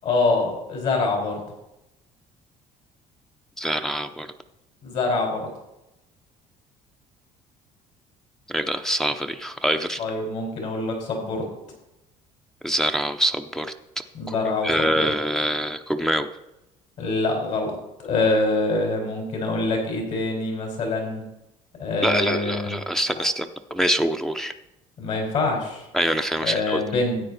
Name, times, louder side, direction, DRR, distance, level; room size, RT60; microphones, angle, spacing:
voice 1, 0.0-1.4 4.8-5.5 10.0-11.5 14.1-15.0 17.0-17.8 18.0-21.2 21.8-22.7 25.0-25.8 26.4-27.2, left 3 dB, 60° left, 1 dB, 4.7 m, -25 dB
voice 2, 3.6-4.3 8.5-10.0 12.6-14.4 14.6-16.3 22.0-24.5 25.9-26.8, equal, 5° left, 8 dB, 0.6 m, -25 dB
13.5 x 8.9 x 4.1 m, 0.90 s
cardioid pair, 120°, 14 cm